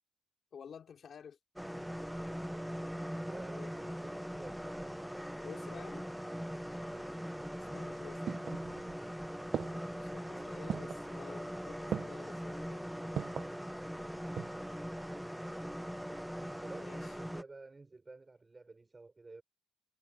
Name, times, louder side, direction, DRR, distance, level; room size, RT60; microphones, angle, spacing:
voice 1, 0.5-1.4 3.6-4.0 5.4-6.1 7.5-8.2 9.9-13.2 16.8-17.1, left 7 dB, 55° left, 3.3 m, -51 dB
sound 1, 1.6-17.4, equal, ahead, 0.5 m, -41 dB
voice 2, 2.5-5.1 6.8-7.3 9.3-9.7 10.2-11.0 16.6-19.4, right 3 dB, 25° right, 4.8 m, -53 dB
sound 2, 7.7-9.1 9.5-10.1 10.7-11.1 11.9-12.3 13.2-13.6 14.1-14.7 15.0-15.1, right 8 dB, 60° right, 0.9 m, -39 dB
cardioid pair, 90°, 0 cm